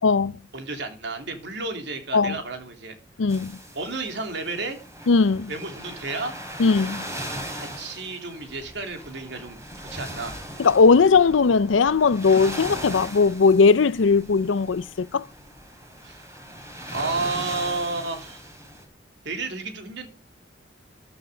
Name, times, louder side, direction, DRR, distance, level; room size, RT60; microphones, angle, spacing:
voice 1, 0.0-0.3 2.1-2.4 3.2-3.6 5.1-5.5 6.6-7.0 10.6-15.3, left 4 dB, 90° left, 0.5 m, -19 dB
voice 2, 0.5-3.0 3.7-4.8 5.5-6.3 7.6-10.4 16.0-16.2 16.9-18.5 19.2-20.1, right 3 dB, 65° right, 3.2 m, -32 dB
sound 1, 3.3-18.8, right 1 dB, 15° right, 4.3 m, -39 dB
14.0 x 9.4 x 5.0 m
head